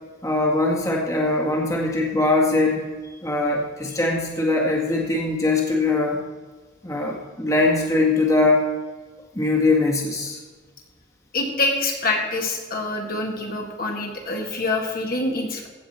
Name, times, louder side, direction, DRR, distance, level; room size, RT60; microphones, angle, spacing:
voice 1, 0.2-2.9 3.2-6.2 6.8-8.6 9.3-10.4, left 2 dB, 20° left, -2 dB, 1.8 m, -21 dB
voice 2, 11.3-15.7, left 2 dB, 55° left, 0 dB, 2.1 m, -25 dB
16.5 x 7.0 x 4.4 m, 1.4 s
head